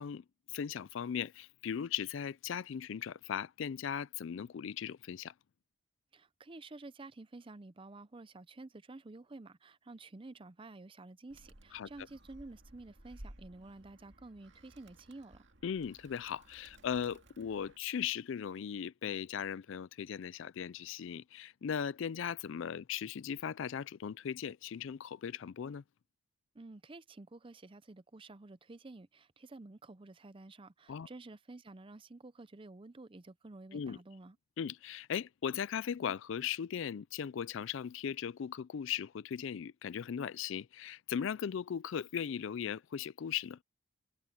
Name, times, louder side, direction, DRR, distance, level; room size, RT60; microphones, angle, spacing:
voice 1, 0.0-5.3 11.7-11.9 15.6-25.8 30.9-31.1 33.7-34.0 34.6-43.6, left 8 dB, 65° left, 0.4 m, -38 dB
voice 2, 6.1-15.5 26.5-34.4, right 2 dB, 25° right, 0.5 m, -51 dB
Animal, 11.3-17.8, right 1 dB, 55° right, 2.4 m, -57 dB
head